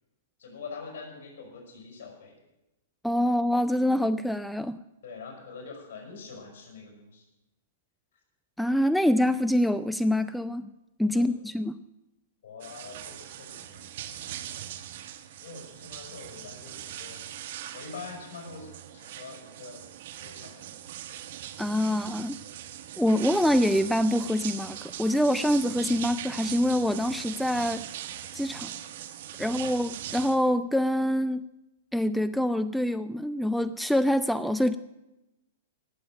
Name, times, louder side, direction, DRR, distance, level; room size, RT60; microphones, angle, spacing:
voice 1, 0.4-2.4 5.0-7.3 11.1-11.3 12.4-14.3 15.4-17.3 17.7-19.9 20.2-20.8 29.4-29.6, left 4 dB, 60° left, 1 dB, 5.6 m, -44 dB
voice 2, 3.0-4.8 8.6-10.7 11.0-11.8 21.6-22.4 23.0-27.9 28.3-28.7 29.4-31.4 31.9-34.8, equal, ahead, 13 dB, 0.4 m, -25 dB
sound 1, 12.6-30.4, right 11 dB, 55° right, 1.3 m, -40 dB
18.0 x 7.6 x 7.5 m, 0.98 s
hypercardioid pair, 110°, 0 cm